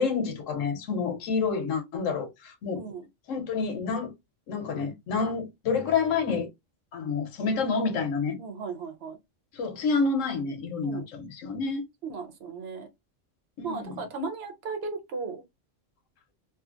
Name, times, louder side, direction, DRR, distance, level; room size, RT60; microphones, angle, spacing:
voice 1, 0.0-2.8 3.3-4.1 4.5-6.5 6.9-8.4 9.5-11.9 13.6-14.0, left 4 dB, 85° left, 1.0 m, -28 dB
voice 2, 8.4-9.2 10.8-11.1 12.0-12.9 13.6-15.4, right 4 dB, 60° right, 1.0 m, -36 dB
2.7 x 2.4 x 2.5 m
omnidirectional pair, 1.3 m